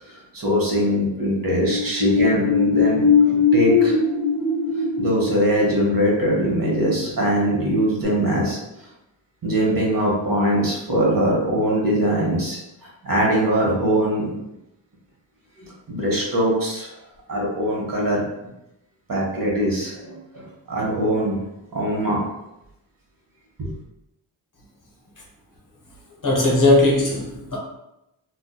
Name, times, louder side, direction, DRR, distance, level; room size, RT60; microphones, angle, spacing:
voice 1, 0.3-3.9 5.0-8.6 9.4-12.6 13.0-14.3 15.6-16.9 17.3-18.2 19.1-21.4 21.7-22.2 23.6-23.7, equal, 45° right, -3 dB, 1.0 m, -22 dB
sound 1, 1.3-7.7 8.0-8.1, left 5 dB, 5° left, 0.5 m, -21 dB
voice 2, 26.2-27.6, left 2 dB, 40° left, -2 dB, 0.8 m, -18 dB
2.5 x 2.2 x 2.2 m, 0.88 s
cardioid pair, 45°, 49 cm